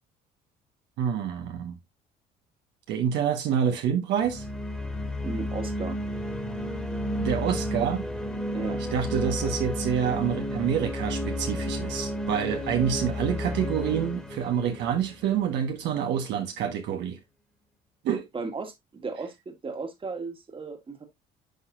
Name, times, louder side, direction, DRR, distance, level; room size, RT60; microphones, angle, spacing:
voice 1, 1.0-1.7 2.9-4.4 7.2-8.0 8.9-17.2 18.0-18.2, right 8 dB, 75° right, 1.4 m, -27 dB
sound 1, 4.2-15.8, left 1 dB, 5° left, 2.0 m, -32 dB
voice 2, 5.2-6.0 8.5-8.8 18.3-21.0, right 4 dB, 30° right, 1.9 m, -35 dB
10.5 x 4.2 x 2.5 m
supercardioid pair, 80°, 18 cm